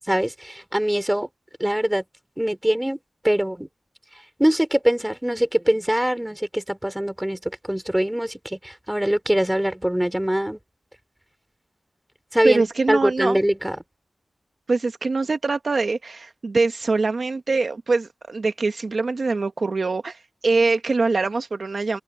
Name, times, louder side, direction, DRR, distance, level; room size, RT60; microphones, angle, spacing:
voice 1, 0.1-1.3 1.6-2.0 2.4-3.0 3.2-3.7 4.4-10.6 12.3-13.8, right 1 dB, 10° right, 4.1 m, -23 dB
voice 2, 12.4-13.4 14.7-22.0, right 3 dB, 60° right, 1.3 m, -23 dB
wide cardioid pair, 70°, 0 cm